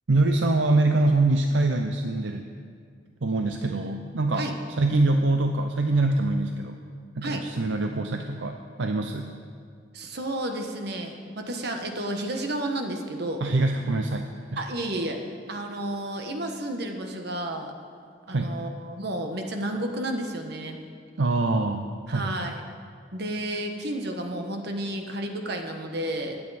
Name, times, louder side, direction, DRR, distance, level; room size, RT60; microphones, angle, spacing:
voice 1, 0.1-2.5 3.2-4.5 4.8-6.8 7.2-9.3 13.4-14.6 18.3-18.5 21.2-22.5, right 2 dB, 80° right, 5 dB, 0.6 m, -24 dB
voice 2, 9.9-13.4 14.6-15.2 15.5-17.7 18.3-20.8 22.1-22.6 23.1-26.4, right 1 dB, 65° right, 4 dB, 1.3 m, -31 dB
21.5 x 8.7 x 4.2 m, 2.2 s
head